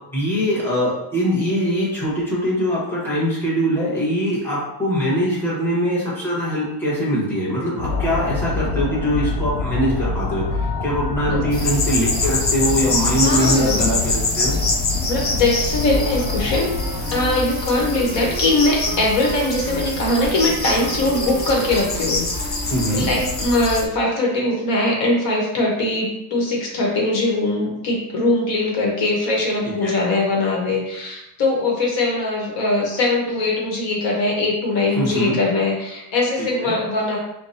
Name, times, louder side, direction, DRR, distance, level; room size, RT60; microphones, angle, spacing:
voice 1, 0.1-14.6 22.6-23.1 29.8-29.9 35.0-35.4 36.4-36.7, equal, 5° left, -9 dB, 1.0 m, -22 dB
sound 1, 7.8-17.4, left 3 dB, 90° left, 0.6 m, -26 dB
sound 2, 11.5-23.9, left 2 dB, 25° left, 0.3 m, -25 dB
voice 2, 13.2-13.9 15.1-16.7 17.1-22.2 22.9-37.2, left 2 dB, 65° left, -2 dB, 1.1 m, -21 dB
Wind instrument woodwind instrument, 16.6-23.7, right 3 dB, 30° right, 0.7 m, -36 dB
4.5 x 2.2 x 2.6 m, 0.86 s
cardioid pair, 150°, 47 cm